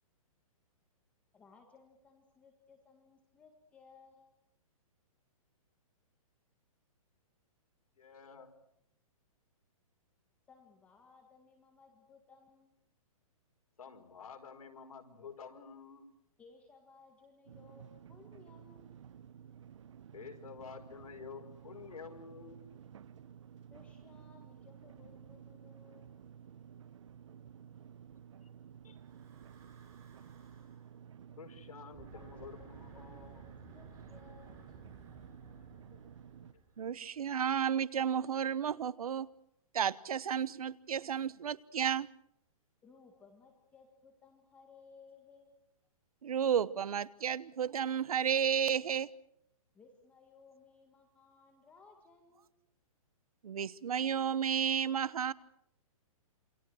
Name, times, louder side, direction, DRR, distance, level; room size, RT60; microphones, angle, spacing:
voice 1, 1.3-4.3 10.5-12.7 16.4-19.0 23.7-26.1 32.1-34.7 42.8-45.5 49.7-52.5, left 4 dB, 5° left, 3 dB, 1.7 m, -61 dB
voice 2, 8.0-8.5 13.8-16.1 20.1-22.6 28.8-29.0 31.4-33.4 35.6-35.7, left 6 dB, 80° left, 3 dB, 5.3 m, -50 dB
sound 1, 17.5-36.5, right 8 dB, 55° right, 0.9 m, -53 dB
Breathing / Wind, 28.9-30.9 31.8-37.2, right 3 dB, 15° right, 5.3 m, -57 dB
voice 3, 36.8-39.3 39.7-42.1 46.2-49.1 53.4-55.3, right 8 dB, 75° right, 19 dB, 1.1 m, -32 dB
28.0 x 24.0 x 6.3 m, 0.76 s
hypercardioid pair, 175°, 19 cm